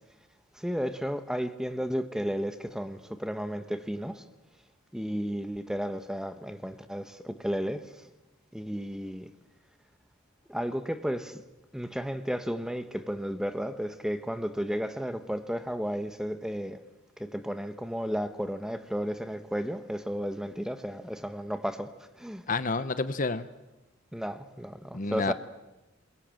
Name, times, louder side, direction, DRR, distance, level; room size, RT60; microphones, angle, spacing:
voice 1, 0.5-4.2 4.9-7.9 8.5-9.3 10.5-11.4 11.7-16.8 17.2-21.9 22.2-22.4 24.1-25.3, equal, 5° right, 1.1 m, -33 dB
voice 2, 22.5-23.5 24.9-25.3, left 3 dB, 40° left, 0.9 m, -29 dB
28.5 x 22.5 x 7.7 m
head